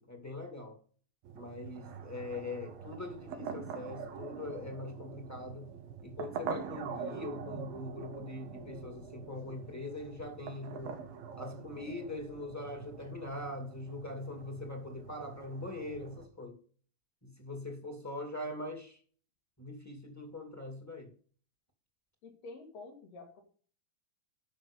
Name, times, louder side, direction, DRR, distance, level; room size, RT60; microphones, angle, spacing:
voice 1, 0.1-0.8 1.3-5.7 6.0-11.0 11.4-16.6 17.2-19.0 19.6-21.1, left 2 dB, 5° left, 1.6 m, -42 dB
sound 1, 1.2-16.3, right 6 dB, 85° right, 3.0 m, -44 dB
voice 2, 22.2-23.4, left 3 dB, 70° left, 4.0 m, -49 dB
12.0 x 6.0 x 5.4 m
omnidirectional pair, 4.1 m